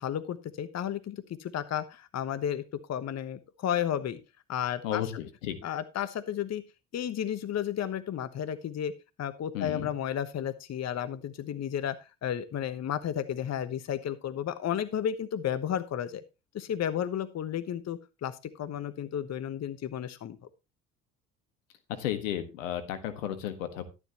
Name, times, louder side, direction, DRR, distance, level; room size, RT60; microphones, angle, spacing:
voice 1, 0.0-2.6 2.9-4.2 4.5-5.0 5.6-6.6 6.9-8.9 9.2-16.2 16.5-20.4, left 9 dB, 45° left, 13 dB, 1.1 m, -33 dB
voice 2, 4.8-5.6 9.5-9.9 21.9-23.9, left 11 dB, 80° left, 10 dB, 1.7 m, -33 dB
12.0 x 11.0 x 3.0 m, 0.27 s
hypercardioid pair, 60°, 38 cm